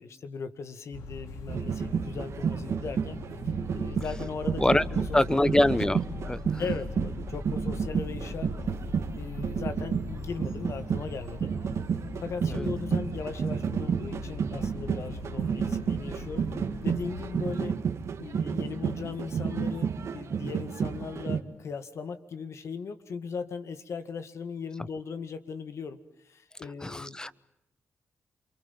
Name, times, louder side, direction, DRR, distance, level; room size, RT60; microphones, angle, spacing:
voice 1, 0.0-3.2 3.7-4.7 4.9-5.6 6.6-8.5 9.2-11.5 12.2-16.5 16.8-17.8 18.2-26.0 26.2-27.2, left 5 dB, 65° left, 10 dB, 2.1 m, -38 dB
sound 1, 0.9-17.4, left 2 dB, 90° left, 2.5 m, -40 dB
sound 2, 1.5-21.4, right 6 dB, 70° right, 2.0 m, -31 dB
voice 2, 5.1-6.0 6.3-6.6 12.5-12.7 26.8-27.3, left 1 dB, 15° left, 18 dB, 1.0 m, -24 dB
28.5 x 23.5 x 7.3 m, 0.85 s
cardioid pair, 55°, 5 cm